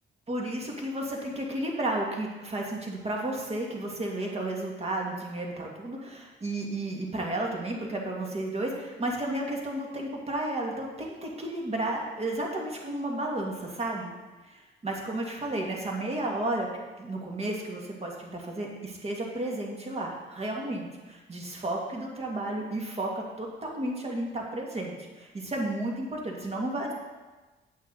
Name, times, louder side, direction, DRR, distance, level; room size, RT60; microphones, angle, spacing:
voice 1, 0.3-14.2 14.5-16.7 17.0-26.9, right 1 dB, 30° right, -1 dB, 2.0 m, -32 dB
8.5 x 8.1 x 4.0 m, 1.2 s
cardioid pair, 90°, 20 cm